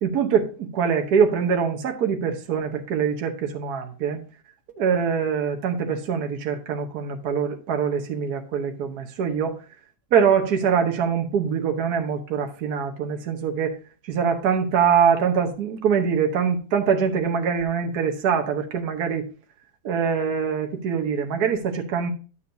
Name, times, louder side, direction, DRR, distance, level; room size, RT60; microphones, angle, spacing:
voice 1, 0.0-4.2 4.8-9.6 10.1-13.8 14.1-19.2 19.8-22.1, right 7 dB, 70° right, 4 dB, 1.5 m, -23 dB
11.0 x 6.9 x 2.6 m, 0.35 s
omnidirectional pair, 1.7 m